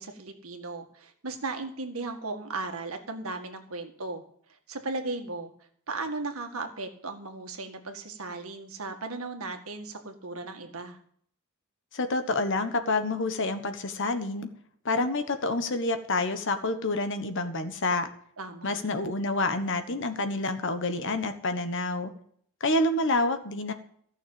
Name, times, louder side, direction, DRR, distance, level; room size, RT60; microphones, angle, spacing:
voice 1, 0.0-4.2 4.5-5.5 5.9-11.0 18.4-19.1, right 3 dB, 75° right, 5 dB, 1.8 m, -36 dB
voice 2, 11.9-14.5 14.8-18.1 18.6-22.1 22.6-23.7, left 2 dB, 60° left, 8 dB, 1.4 m, -28 dB
14.5 x 6.5 x 8.8 m, 0.62 s
head